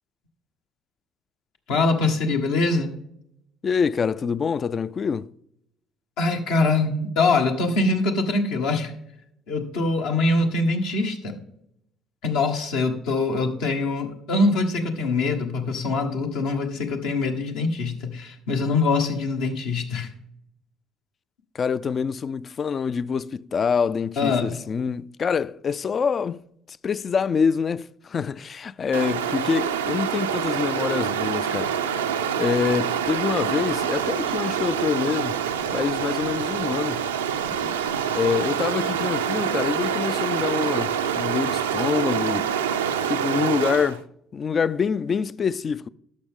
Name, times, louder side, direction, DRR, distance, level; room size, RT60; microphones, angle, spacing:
voice 1, 1.7-2.9 6.2-8.9 9.5-11.4 12.2-20.1 24.2-24.6 37.6-37.7, left 3 dB, 70° left, 1.2 m, -23 dB
voice 2, 3.6-5.3 21.5-26.4 26.8-31.7 32.4-35.4 35.7-37.0 38.1-42.5 43.1-44.1 44.3-45.9, left 6 dB, 40° left, 0.3 m, -25 dB
Stream, 28.9-44.0, right 8 dB, 85° right, 0.4 m, -26 dB
11.5 x 6.4 x 3.6 m
hypercardioid pair, 55°, 0 cm